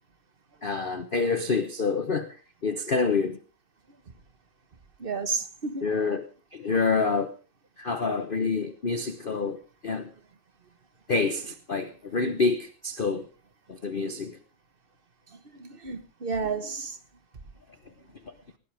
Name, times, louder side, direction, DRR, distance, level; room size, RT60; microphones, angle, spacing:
voice 1, 0.6-3.4 5.8-6.2 6.5-7.3 7.8-10.1 11.1-13.3 13.7-14.4 18.2-18.3, left 4 dB, 40° left, 0.9 m, -27 dB
voice 2, 5.0-5.9 15.6-17.0, right 4 dB, 30° right, 1.3 m, -31 dB
20.0 x 17.0 x 3.5 m
omnidirectional pair, 2.1 m